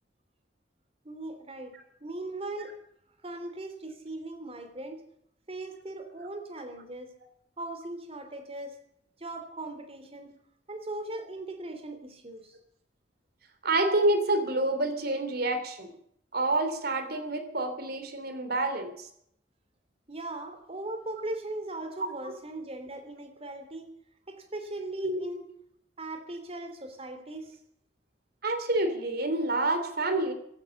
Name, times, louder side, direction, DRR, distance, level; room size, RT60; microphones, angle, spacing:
voice 1, 1.0-1.7 2.0-2.7 3.2-5.0 5.5-7.1 7.6-8.8 9.2-10.3 10.7-12.5 20.1-23.9 24.3-25.4 26.0-27.6, right 2 dB, 35° right, 7 dB, 3.1 m, -39 dB
voice 2, 13.6-15.9 16.3-19.1 25.0-25.2 28.4-30.3, right 2 dB, 60° right, 8 dB, 3.1 m, -28 dB
16.0 x 12.5 x 7.2 m, 0.71 s
head